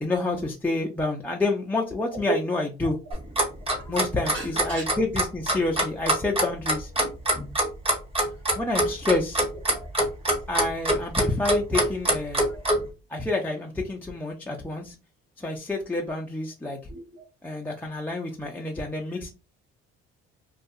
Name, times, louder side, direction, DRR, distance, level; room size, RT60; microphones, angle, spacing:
voice 1, 0.0-3.0 3.9-6.9 8.6-9.4 10.5-12.4 13.1-14.9 15.4-16.8 17.4-19.3, left 2 dB, 5° left, 0.4 m, -28 dB
Clock, 3.1-12.8, right 1 dB, 20° right, 1.1 m, -23 dB
voice 2, 4.3-4.8 6.1-6.2 9.7-9.9 10.3-10.4 12.5-12.6 16.9-17.2, right 2 dB, 55° right, 0.8 m, -39 dB
2.4 x 2.3 x 2.6 m
supercardioid pair, 65°, 29 cm